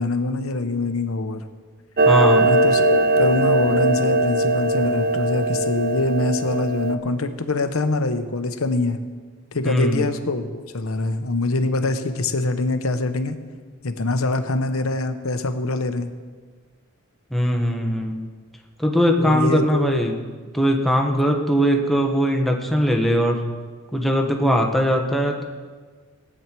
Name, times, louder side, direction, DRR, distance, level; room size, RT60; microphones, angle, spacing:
voice 1, 0.0-1.4 2.4-9.0 9.5-13.3 13.8-16.1 19.2-20.2, left 2 dB, 80° left, 9 dB, 0.9 m, -24 dB
voice 2, 2.0-2.6 9.6-10.0 17.3-18.3 18.8-20.1 20.5-23.5 23.9-25.4, equal, ahead, 1 dB, 1.3 m, -20 dB
Clock, 2.0-6.9, right 2 dB, 50° right, 0.7 m, -20 dB
18.5 x 8.9 x 4.6 m, 1.5 s
head